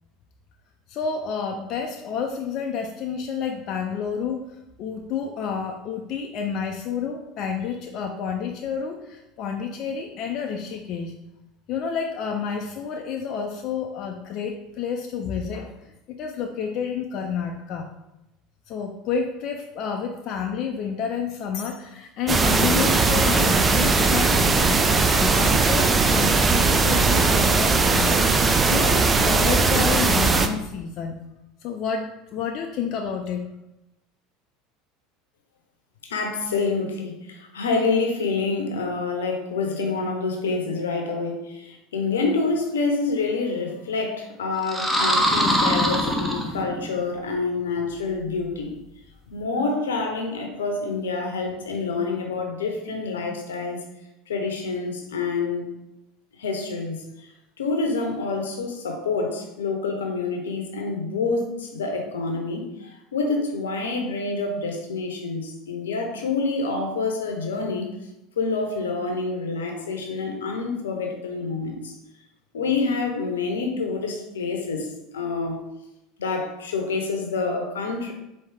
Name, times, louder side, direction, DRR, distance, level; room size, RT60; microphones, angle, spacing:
voice 1, 0.9-4.4 4.8-11.1 11.7-17.9 18.7-28.3 28.7-31.2 31.6-33.5, left 6 dB, 50° left, 3 dB, 0.4 m, -30 dB
sound 1, 22.3-30.5, right 4 dB, 25° right, 0.4 m, -19 dB
voice 2, 36.0-48.8 49.3-53.8 54.3-55.7 56.4-57.3 57.6-67.9 68.4-72.0 72.5-75.6 76.2-78.1, left 4 dB, 80° left, 3 dB, 0.7 m, -27 dB
sound 2, 44.6-46.9, equal, 5° right, 0.8 m, -22 dB
4.5 x 2.8 x 3.4 m, 0.90 s
hypercardioid pair, 75°, 0 cm